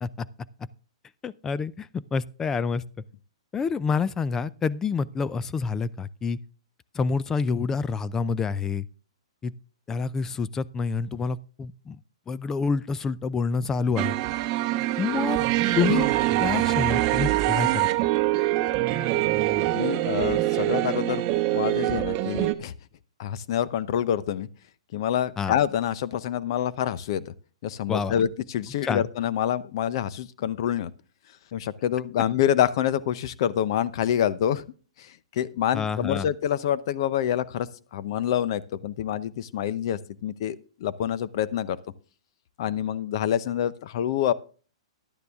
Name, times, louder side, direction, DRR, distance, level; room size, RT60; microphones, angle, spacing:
voice 1, 1.2-2.8 3.5-6.4 6.9-8.9 9.4-9.5 9.9-12.0 12.3-14.1 15.0-15.4 15.8-16.1 16.4-17.9 25.4-25.6 27.9-28.2 28.8-29.0 35.7-36.3, left 5 dB, 15° left, 0.4 m, -27 dB
sound 1, 14.0-22.5, right 16 dB, 35° right, 0.9 m, -24 dB
voice 2, 19.7-21.2 21.5-22.7 23.2-24.5 24.9-27.2 27.6-30.9 31.5-34.6 35.0-41.8 42.6-44.3, left 10 dB, 55° left, 0.8 m, -27 dB
12.0 x 9.5 x 3.6 m
hypercardioid pair, 140°, 3 cm